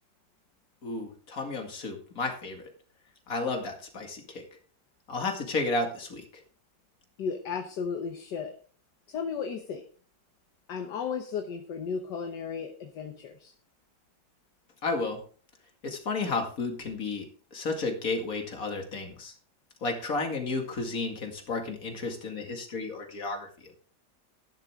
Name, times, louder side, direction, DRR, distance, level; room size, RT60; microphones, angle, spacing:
voice 1, 0.8-2.7 3.3-4.4 5.1-6.4 14.8-15.2 15.8-19.3 19.8-23.7, left 3 dB, 50° left, 3 dB, 2.5 m, -32 dB
voice 2, 7.2-8.5 9.1-9.8 10.7-13.5, left 6 dB, 70° left, 4 dB, 1.6 m, -34 dB
12.0 x 10.5 x 3.6 m, 0.43 s
omnidirectional pair, 2.0 m